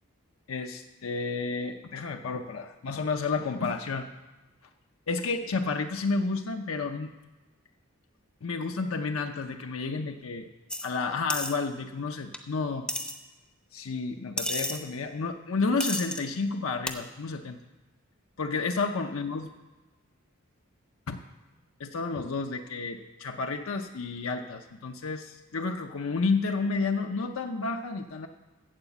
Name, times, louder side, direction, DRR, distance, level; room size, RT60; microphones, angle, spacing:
voice 1, 0.5-4.1 5.1-7.1 8.4-10.5 10.8-12.9 13.7-17.6 18.4-19.5 21.1-21.2 21.8-28.3, left 4 dB, 75° left, 4 dB, 0.6 m, -31 dB
sound 1, 10.7-10.9 11.3-11.5 12.3-12.4 12.9-13.1 14.4-14.8 15.8-16.2 16.9-17.0, left 1 dB, 5° left, 0.6 m, -31 dB
14.5 x 4.9 x 8.0 m, 1.2 s
head